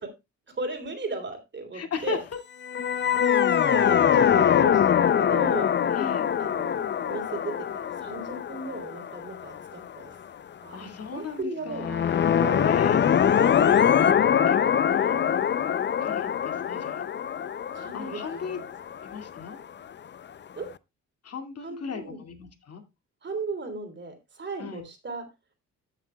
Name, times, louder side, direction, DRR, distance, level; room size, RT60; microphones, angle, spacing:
voice 1, 0.6-2.2 3.6-5.7 6.4-7.5 7.8-10.2 10.6-11.9 12.4-12.9 14.9-15.3 17.7-18.6 20.6-20.7 21.6-22.2 23.2-25.2, right 3 dB, 40° right, 5 dB, 3.4 m, -36 dB
voice 2, 1.7-2.2 5.9-6.3 10.7-12.2 12.6-13.8 14.5-14.6 14.8-15.2 16.0-17.0 17.9-18.6 19.0-19.6 21.2-22.8 24.6-24.8, left 5 dB, 55° left, 6 dB, 2.4 m, -36 dB
sound 1, 2.6-9.9 11.8-19.5, left 8 dB, 35° left, 0.5 m, -23 dB
14.0 x 7.5 x 2.3 m, 0.23 s
cardioid pair, 90°, 30 cm